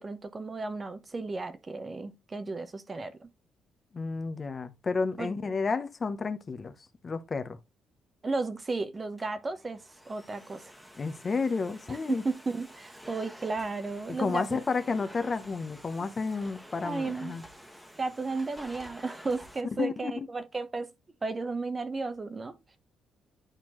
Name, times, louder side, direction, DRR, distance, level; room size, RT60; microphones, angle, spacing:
voice 1, 0.0-3.3 5.2-5.3 8.2-9.8 10.1-10.7 11.9-14.6 16.8-17.4 18.0-20.9 21.2-22.6, right 3 dB, 30° right, 1.0 m, -34 dB
voice 2, 3.9-6.7 7.0-7.6 11.0-12.2 14.2-17.4 19.8-20.1, left 4 dB, 35° left, 0.9 m, -31 dB
Domestic sounds home sounds, 8.9-19.6, equal, 5° right, 1.4 m, -50 dB
9.1 x 4.4 x 3.1 m
cardioid pair, 80°, 0 cm